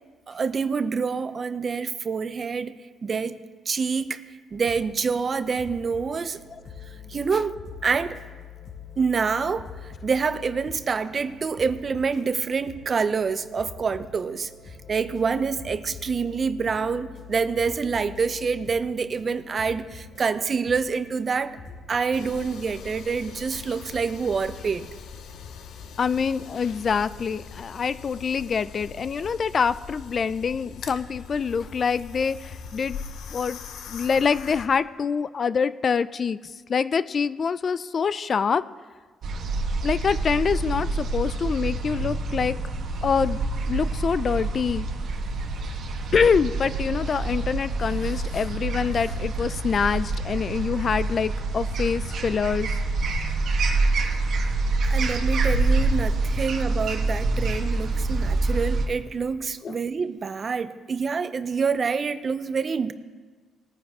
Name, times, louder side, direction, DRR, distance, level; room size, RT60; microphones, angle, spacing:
voice 1, 0.3-3.4 3.7-6.4 7.1-8.2 9.0-14.5 14.9-21.6 21.9-24.9 54.8-62.9, right 5 dB, 40° right, 13 dB, 0.6 m, -27 dB
sound 1, 4.5-22.0, left 5 dB, 60° left, 2.8 m, -44 dB
sound 2, 22.1-34.7, left 6 dB, 80° left, 0.8 m, -41 dB
voice 2, 26.0-33.0 33.3-33.6 33.9-38.6 39.8-42.6 43.0-43.4 43.7-44.9 46.1-52.8 59.6-59.8, left 6 dB, 45° left, 16 dB, 0.4 m, -25 dB
sound 3, 39.2-58.9, right 2 dB, 65° right, 1.4 m, -26 dB
19.5 x 9.6 x 3.6 m, 1.4 s
cardioid pair, 90°, 0 cm